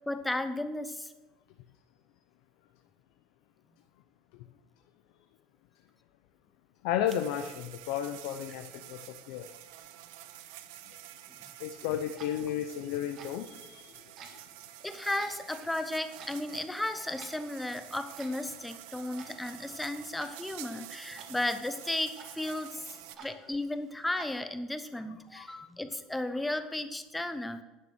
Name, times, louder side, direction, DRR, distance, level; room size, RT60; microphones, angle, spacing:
voice 1, 0.1-1.1 14.8-22.8 23.2-27.6, left 1 dB, 5° left, 10 dB, 0.6 m, -34 dB
voice 2, 6.8-9.5 11.6-14.4 25.3-25.6, left 10 dB, 70° left, 7 dB, 0.6 m, -34 dB
sound 1, 7.1-23.2, right 14 dB, 80° right, 0.6 m, -49 dB
Clock, 11.8-24.4, right 5 dB, 45° right, 1.4 m, -54 dB
10.5 x 6.3 x 6.0 m, 1.1 s
cardioid pair, 165°, 0 cm